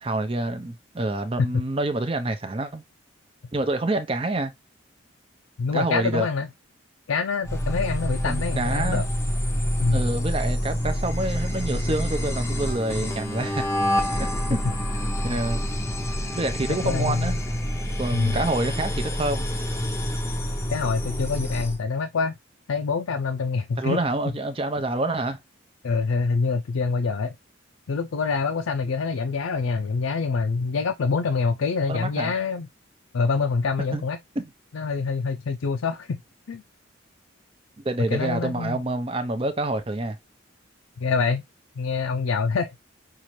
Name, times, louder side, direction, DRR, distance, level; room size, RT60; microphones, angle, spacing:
voice 1, 0.0-2.8 3.5-4.5 5.7-6.3 8.3-9.0 9.9-13.7 14.2-14.6 15.0-15.6 16.3-17.4 18.0-19.5 23.8-25.4 31.9-32.3 33.9-34.0 34.4-34.5 37.8-40.2, right 2 dB, 25° right, 0.6 m, -27 dB
voice 2, 5.6-6.5 7.1-9.1 9.8-10.1 16.7-17.4 18.1-18.4 20.7-22.3 22.7-24.0 25.8-27.4 27.9-32.7 33.1-34.2 34.7-36.2 36.5-36.6 38.1-38.8 41.0-41.4 41.8-42.7, left 4 dB, 90° left, 0.4 m, -26 dB
sound 1, 7.4-21.8, equal, 15° left, 0.6 m, -27 dB
5.6 x 2.5 x 3.1 m
head